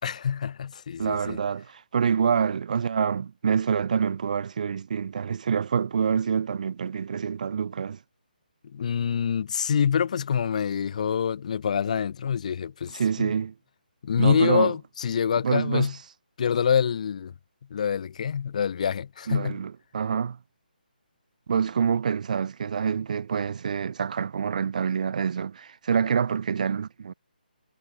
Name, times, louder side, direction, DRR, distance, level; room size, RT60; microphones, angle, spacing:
voice 1, 0.0-1.4 8.7-13.3 14.0-15.9 16.4-17.3 17.7-19.6, left 7 dB, 45° left, 2.7 m, -26 dB
voice 2, 1.0-8.0 12.9-13.5 14.2-14.8 15.4-15.9 19.3-20.4 21.5-27.1, right 7 dB, 50° right, 1.0 m, -26 dB
figure-of-eight pair, 155°, 5 cm